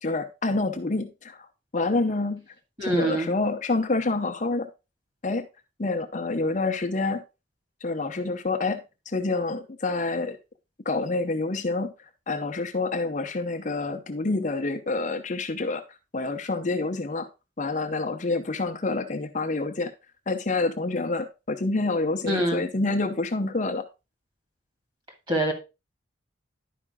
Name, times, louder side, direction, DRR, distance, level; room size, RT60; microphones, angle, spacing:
voice 1, 0.0-1.5 1.7-2.4 2.8-4.7 5.2-5.5 5.8-7.2 7.8-10.4 10.8-11.9 12.3-15.8 16.1-17.3 17.6-19.9 20.3-23.8, left 3 dB, 40° left, 0.7 m, -27 dB
voice 2, 2.8-3.3 22.2-22.6 25.3-25.5, right 1 dB, 25° right, 2.2 m, -24 dB
11.0 x 5.1 x 3.6 m
head